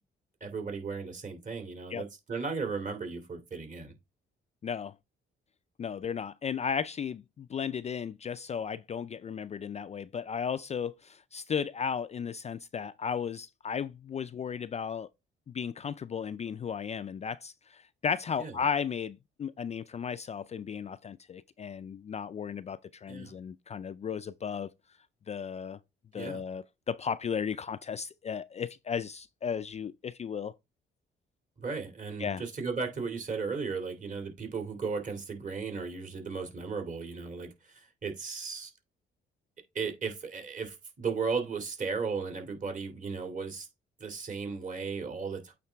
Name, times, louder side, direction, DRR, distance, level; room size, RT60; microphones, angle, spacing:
voice 1, 0.4-3.9 18.4-18.6 23.1-23.3 26.1-26.4 31.6-38.7 39.7-43.7 44.0-45.5, right 5 dB, 40° right, 2.5 m, -35 dB
voice 2, 4.6-4.9 5.8-15.1 15.5-24.7 25.3-25.8 26.1-30.5 32.2-32.4, left 7 dB, 35° left, 0.4 m, -35 dB
8.5 x 3.9 x 3.4 m
cardioid pair, 90°, 20 cm